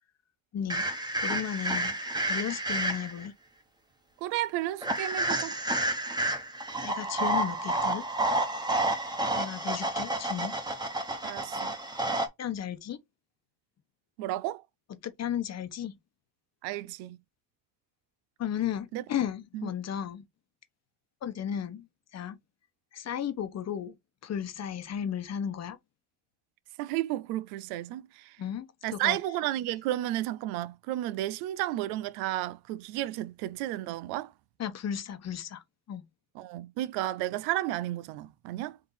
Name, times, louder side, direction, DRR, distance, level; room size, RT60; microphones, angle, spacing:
voice 1, 0.5-0.9 1.2-2.0 2.2-3.3 6.8-8.0 9.3-10.5 12.4-13.0 15.0-15.9 18.4-20.3 21.2-21.9 22.1-22.4 22.9-23.9 24.2-25.8 28.4-29.2 34.6-36.0, left 9 dB, 45° left, 0.9 m, -34 dB
sound 1, 0.7-3.3 4.8-12.3, right 1 dB, 10° right, 1.2 m, -30 dB
voice 2, 4.2-5.5 11.2-11.7 14.2-14.6 16.6-17.2 18.9-19.0 19.5-19.7 26.8-28.4 28.8-34.3 36.3-38.8, right 15 dB, 90° right, 0.5 m, -32 dB
3.8 x 2.8 x 4.0 m
supercardioid pair, 90°, 36 cm